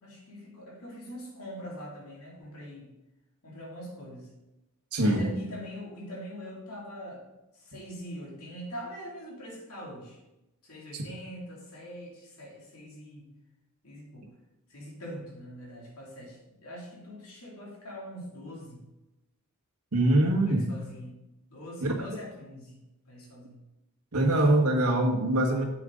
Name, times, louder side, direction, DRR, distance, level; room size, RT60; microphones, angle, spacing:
voice 1, 0.0-2.9 3.4-4.3 5.0-7.2 7.5-10.2 10.6-13.3 13.8-14.3 14.7-18.8 20.5-21.2 21.5-22.8 23.1-23.6, equal, 75° left, -3 dB, 2.7 m, -43 dB
voice 2, 4.9-5.3 19.9-20.7 21.9-22.1 24.1-25.6, right 1 dB, 80° right, 2 dB, 1.4 m, -23 dB
7.7 x 7.6 x 3.8 m, 0.96 s
head